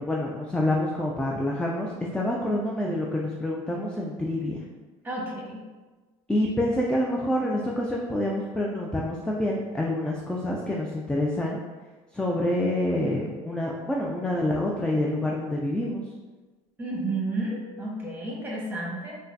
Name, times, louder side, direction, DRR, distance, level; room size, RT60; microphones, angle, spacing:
voice 1, 0.0-4.6 6.3-11.6 12.1-16.0, left 1 dB, 5° left, -2 dB, 0.4 m, -27 dB
voice 2, 5.0-5.6 16.8-19.2, right 2 dB, 10° right, -4 dB, 1.3 m, -31 dB
3.8 x 2.2 x 2.6 m, 1.3 s
hypercardioid pair, 70°, 16 cm